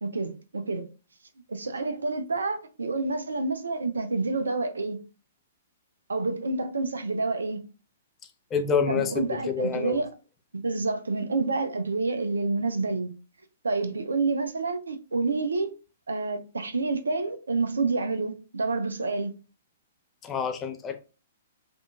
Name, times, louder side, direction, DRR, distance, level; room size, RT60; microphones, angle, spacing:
voice 1, 0.0-0.9 1.5-5.0 6.1-7.6 8.9-10.1 10.5-13.1 13.6-15.7 16.1-19.3, right 3 dB, 70° right, 0.6 m, -28 dB
voice 2, 8.5-10.0 20.2-21.0, left 6 dB, 20° left, 0.6 m, -27 dB
5.1 x 2.5 x 2.3 m
figure-of-eight pair, 115°, 0 cm